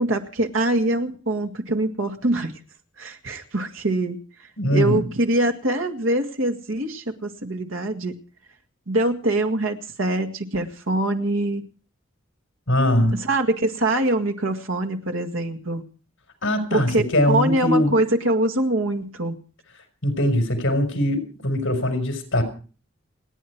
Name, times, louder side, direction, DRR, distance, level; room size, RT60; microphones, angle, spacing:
voice 1, 0.0-2.5 3.0-4.2 4.7-8.2 8.9-11.7 13.1-15.8 16.7-19.4, right 1 dB, 85° right, 6 dB, 2.0 m, -24 dB
voice 2, 4.6-5.1 12.7-13.1 16.4-17.9 20.0-22.4, left 1 dB, 70° left, 7 dB, 4.6 m, -21 dB
29.0 x 9.7 x 4.6 m, 0.38 s
head